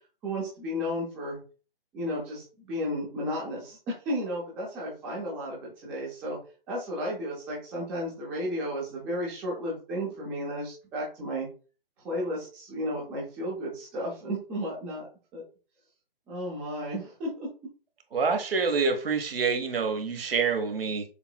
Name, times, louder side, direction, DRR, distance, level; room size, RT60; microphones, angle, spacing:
voice 1, 0.2-1.4 1.9-6.4 6.7-11.5 12.0-15.1 15.3-15.4 16.3-17.5, equal, 5° right, 0.4 m, -33 dB
voice 2, 18.1-21.0, right 5 dB, 75° right, 1.3 m, -27 dB
6.7 x 3.0 x 2.3 m
hypercardioid pair, 150°, 29 cm